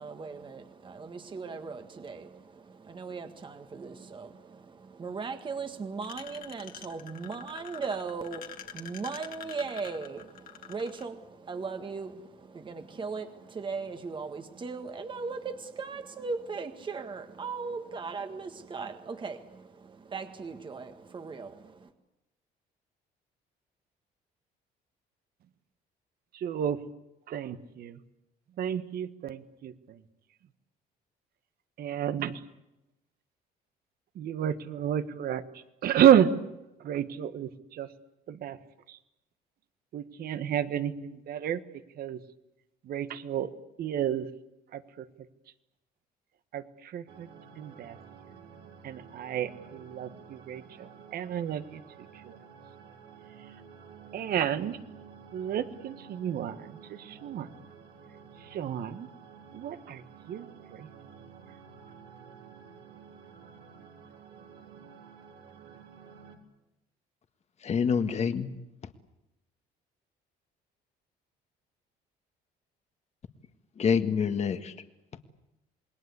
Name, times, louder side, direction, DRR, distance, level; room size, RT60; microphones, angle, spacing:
voice 1, 0.0-21.9, right 4 dB, 30° right, 7 dB, 1.7 m, -38 dB
sound 1, 6.0-11.0, left 9 dB, 55° left, 2.2 m, -45 dB
voice 2, 26.3-26.8 27.3-28.0 28.6-30.0 31.8-32.4 34.1-35.4 35.8-36.3 36.8-37.9 38.3-38.6 39.9-41.6 42.0-42.2 42.8-43.5 43.8-44.3 44.7-45.1 46.5-47.3 47.6-48.0 48.8-51.8 52.2-52.4 54.1-54.8 55.3-57.5 58.5-59.1 59.5-60.0 60.3-60.9, right 10 dB, 65° right, 11 dB, 1.6 m, -30 dB
sound 2, 47.1-66.4, right 6 dB, 80° right, 3.8 m, -51 dB
voice 3, 67.6-68.5 73.8-74.7, left 6 dB, 40° left, 8 dB, 1.7 m, -26 dB
28.0 x 21.0 x 8.3 m, 0.90 s
cardioid pair, 110°, 17 cm